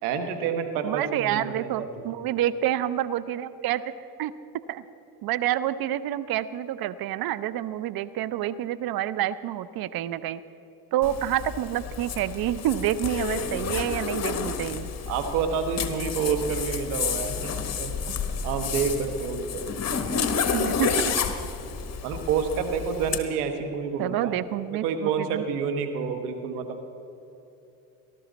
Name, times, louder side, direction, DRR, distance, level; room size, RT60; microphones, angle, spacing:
voice 1, 0.0-1.9 15.1-17.9 18.4-19.6 22.0-24.4 24.7-26.9, right 6 dB, 85° right, 6 dB, 1.5 m, -28 dB
voice 2, 0.8-3.9 4.2-4.3 4.7-4.8 5.2-10.4 10.9-14.9 20.5-21.1 24.0-25.4, right 12 dB, 55° right, 16 dB, 0.6 m, -28 dB
Zipper (clothing), 11.0-23.2, left 6 dB, 35° left, 1.4 m, -30 dB
19.0 x 12.0 x 4.1 m, 2.9 s
hypercardioid pair, 75°, 44 cm